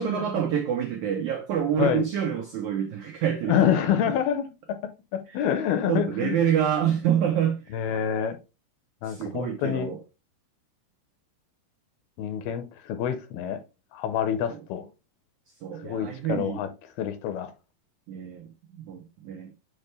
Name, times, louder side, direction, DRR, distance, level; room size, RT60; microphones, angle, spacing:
voice 1, 0.0-3.6 5.9-7.8 9.0-10.0 15.6-16.6 18.1-19.5, right 9 dB, 90° right, 1.7 m, -27 dB
voice 2, 3.5-4.5 5.1-6.4 7.7-8.4 9.0-9.9 12.2-13.6 13.9-14.9 15.8-16.7 17.0-17.5, left 9 dB, 80° left, 2.5 m, -27 dB
7.5 x 4.5 x 3.2 m
omnidirectional pair, 4.6 m